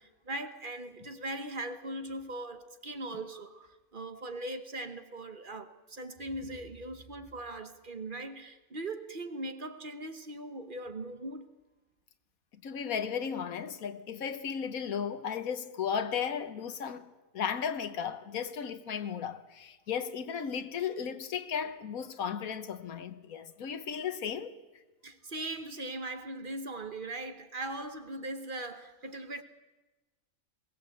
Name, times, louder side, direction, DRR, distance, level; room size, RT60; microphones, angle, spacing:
voice 1, 0.0-11.4 25.0-29.4, right 2 dB, 40° right, 1.2 m, -40 dB
voice 2, 12.6-17.1 17.3-24.5, left 7 dB, 85° left, 1.6 m, -35 dB
21.5 x 18.0 x 7.8 m
omnidirectional pair, 1.4 m